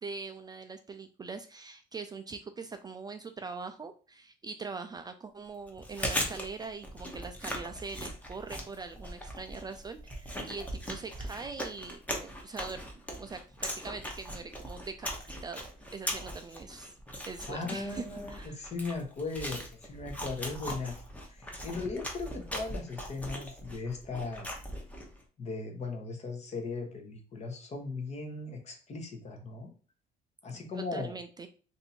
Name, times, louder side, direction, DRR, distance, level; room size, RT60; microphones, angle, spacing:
voice 1, 0.0-12.8 13.1-16.9 17.2-18.0 18.3-18.6 30.7-31.5, right 4 dB, 25° right, 7 dB, 0.3 m, -42 dB
Chewing mastication, 5.7-25.2, equal, 10° left, 0.9 m, -39 dB
voice 2, 17.5-21.0 21.3-24.5 25.4-29.7 30.4-31.2, left 3 dB, 40° left, 4 dB, 1.0 m, -38 dB
2.7 x 2.7 x 4.2 m, 0.37 s
cardioid pair, 110°, 17 cm